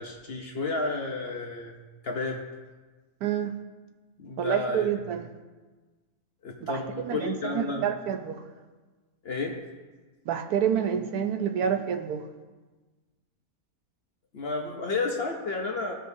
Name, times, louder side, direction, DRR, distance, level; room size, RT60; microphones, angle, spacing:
voice 1, 0.0-1.7 2.0-2.4 4.2-4.9 6.4-7.9 9.2-9.6 14.3-15.9, left 3 dB, 55° left, 1 dB, 0.8 m, -31 dB
voice 2, 3.2-3.6 4.4-5.3 6.6-8.4 10.3-12.2, right 8 dB, 75° right, 6 dB, 1.1 m, -28 dB
15.0 x 5.1 x 2.7 m, 1.3 s
omnidirectional pair, 1.6 m